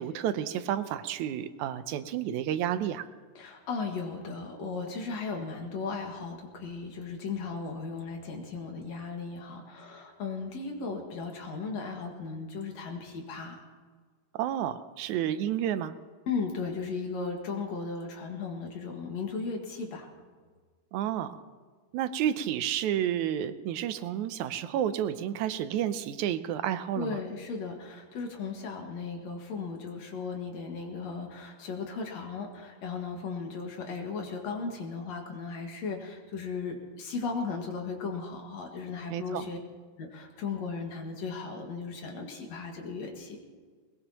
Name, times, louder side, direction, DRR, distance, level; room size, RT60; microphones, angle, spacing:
voice 1, 0.0-3.1 14.3-15.9 20.9-21.4 21.9-27.2 39.1-39.5, right 10 dB, 80° right, 11 dB, 2.0 m, -30 dB
voice 2, 3.4-13.6 16.3-20.1 27.0-39.6 40.0-43.4, left 4 dB, 65° left, 2 dB, 2.9 m, -36 dB
21.0 x 20.5 x 2.9 m, 1.5 s
omnidirectional pair, 3.4 m